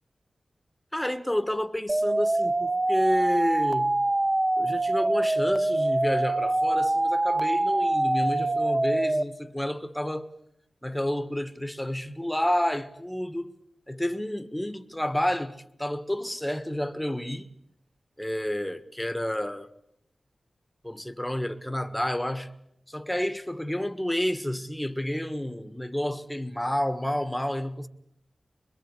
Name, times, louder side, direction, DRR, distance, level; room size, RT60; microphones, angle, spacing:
voice 1, 0.9-3.9 4.6-10.3 10.8-13.5 13.9-17.5 18.2-19.7 20.8-22.5 22.9-27.9, left 1 dB, 5° left, 1.5 m, -30 dB
sound 1, 1.9-9.2, right 2 dB, 30° right, 1.0 m, -24 dB
25.0 x 22.5 x 8.3 m
wide cardioid pair, 70°, 0 cm